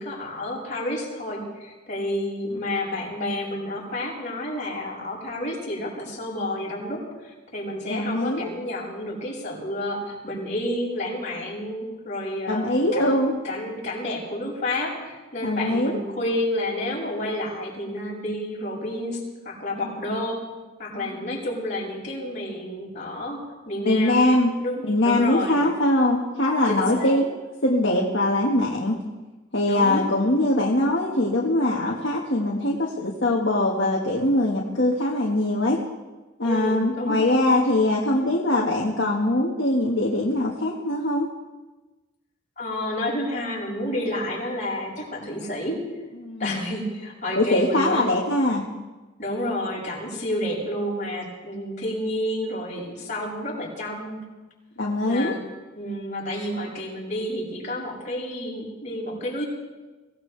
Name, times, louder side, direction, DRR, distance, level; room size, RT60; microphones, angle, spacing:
voice 1, 0.0-13.1 13.4-19.2 19.4-20.4 20.8-25.7 26.7-27.2 29.6-30.1 36.4-37.3 42.6-45.8 46.4-48.1 49.2-54.2 55.0-59.5, left 1 dB, 40° left, -5 dB, 6.8 m, -30 dB
voice 2, 7.9-8.5 12.5-13.3 15.4-16.0 20.9-21.4 23.9-24.5 24.8-27.3 27.6-29.0 29.5-35.8 36.4-41.3 46.2-46.6 47.4-48.6 54.8-55.4, left 1 dB, 65° left, -3 dB, 1.7 m, -22 dB
23.5 x 17.0 x 3.4 m, 1.2 s
head